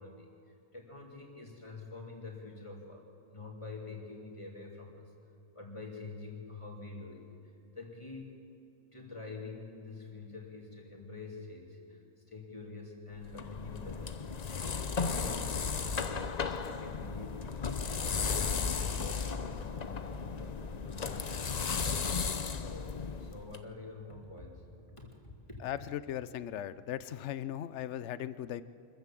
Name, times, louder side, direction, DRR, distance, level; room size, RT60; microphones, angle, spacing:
voice 1, 0.0-3.0 3.3-5.1 5.5-7.3 7.7-8.4 8.9-14.1 14.5-17.5 18.2-24.6 25.0-25.6, left 3 dB, 25° left, 0 dB, 3.0 m, -46 dB
sound 1, 13.2-23.6, left 5 dB, 40° left, 0.7 m, -35 dB
voice 2, 25.6-28.6, left 11 dB, 65° left, 15 dB, 0.9 m, -38 dB
25.0 x 14.5 x 7.6 m, 2.7 s
omnidirectional pair, 1.3 m